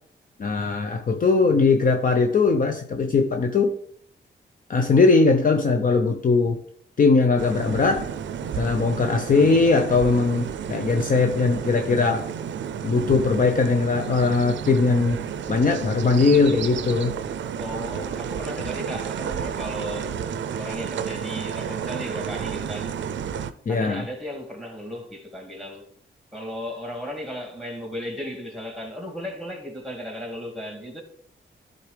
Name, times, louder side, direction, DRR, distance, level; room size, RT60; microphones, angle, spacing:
voice 1, 0.4-3.7 4.7-6.6 7.0-8.1 8.5-12.3 12.8-15.2 15.5-17.1 23.7-24.0, left 4 dB, 45° left, 0.7 m, -20 dB
sound 1, 7.4-23.5, right 8 dB, 75° right, 0.5 m, -31 dB
voice 2, 17.6-20.1 20.6-22.9 23.7-25.9 26.3-31.0, equal, ahead, 2.3 m, -35 dB
12.0 x 4.0 x 3.3 m
cardioid pair, 80°, 19 cm